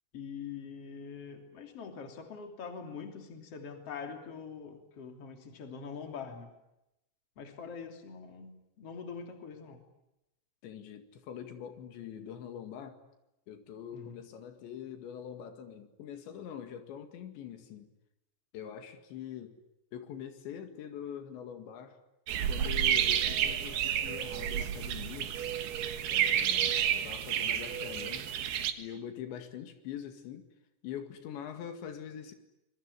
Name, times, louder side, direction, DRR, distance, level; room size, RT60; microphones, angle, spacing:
voice 1, 0.1-6.6 7.4-9.8 13.9-14.2, left 6 dB, 35° left, 5 dB, 3.5 m, -44 dB
voice 2, 10.6-13.0 13.5-17.9 18.5-19.6 19.9-22.0 22.5-25.3 26.1-28.3 28.8-30.4 30.8-32.3, left 9 dB, 85° left, 7 dB, 4.4 m, -44 dB
sound 1, 22.3-28.7, right 9 dB, 70° right, 3.4 m, -30 dB
26.5 x 22.0 x 9.8 m, 0.89 s
omnidirectional pair, 5.0 m